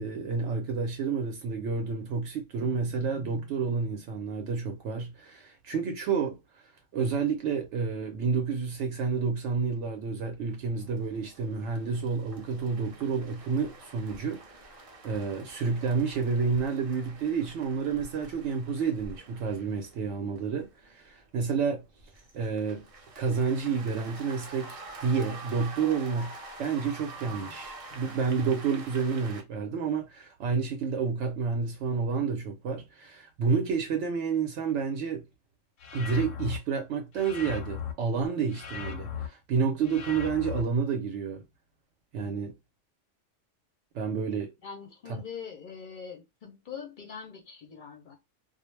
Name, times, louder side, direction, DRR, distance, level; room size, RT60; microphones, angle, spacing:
voice 1, 0.0-6.4 6.9-21.8 22.3-22.8 23.2-26.3 26.6-35.2 35.9-41.4 42.1-42.5 43.9-44.5, right 5 dB, 75° right, 0.9 m, -30 dB
sound 1, 10.6-29.4, right 2 dB, 40° right, 0.5 m, -47 dB
sound 2, 35.8-36.6 37.1-37.9 38.5-39.3 39.8-40.6, left 7 dB, 90° left, 1.0 m, -37 dB
voice 2, 44.6-48.1, left 6 dB, 55° left, 0.6 m, -43 dB
2.3 x 2.0 x 3.0 m
omnidirectional pair, 1.3 m